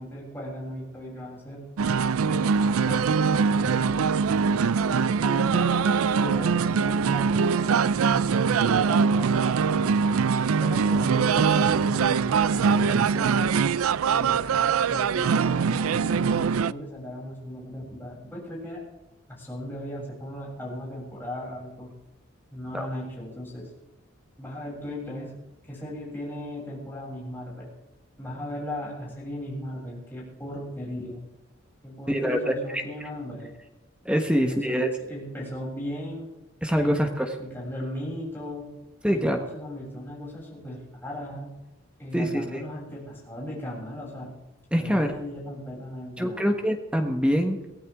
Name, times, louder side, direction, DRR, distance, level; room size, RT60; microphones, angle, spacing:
voice 1, 0.0-1.7 2.3-4.1 4.8-10.0 10.6-13.6 14.1-18.8 19.3-21.9 22.5-23.7 24.4-25.4 25.7-27.7 28.2-31.3 31.8-33.5 34.2-36.3 36.8-38.7 39.1-41.5 42.0-44.3 44.8-46.5, left 1 dB, 10° left, -5 dB, 7.6 m, -37 dB
sound 1, 1.8-16.7, right 6 dB, 90° right, 0.4 m, -23 dB
voice 2, 32.1-32.8 34.0-34.9 36.6-37.3 39.0-39.4 42.1-42.6 44.7-45.1 46.2-47.6, equal, 5° right, 4 dB, 1.3 m, -24 dB
23.0 x 16.0 x 3.7 m, 1.0 s
head